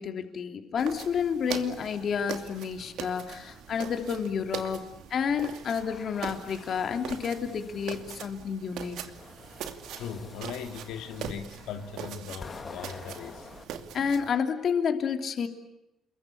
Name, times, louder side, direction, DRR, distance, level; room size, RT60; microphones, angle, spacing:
voice 1, 0.0-9.0 13.9-15.5, left 6 dB, 45° left, 5 dB, 3.1 m, -30 dB
sound 1, 0.8-14.3, right 8 dB, 75° right, 2.6 m, -42 dB
sound 2, 5.5-8.2 8.8-13.6, left 4 dB, 25° left, 2.5 m, -48 dB
voice 2, 10.0-13.5, left 7 dB, 90° left, 5 dB, 2.7 m, -39 dB
29.0 x 22.5 x 8.5 m, 0.87 s
cardioid pair, 155°, 0 cm